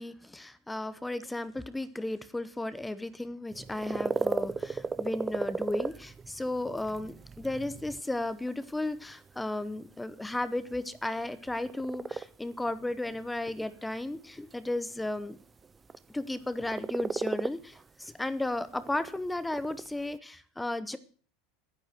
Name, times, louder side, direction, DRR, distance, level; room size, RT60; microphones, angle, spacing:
voice 1, 0.0-15.4 16.1-21.0, left 2 dB, 5° left, 14 dB, 0.9 m, -34 dB
sound 1, 3.5-20.2, right 5 dB, 20° right, 0.6 m, -37 dB
10.5 x 10.0 x 7.5 m, 0.42 s
supercardioid pair, 120°, 0 cm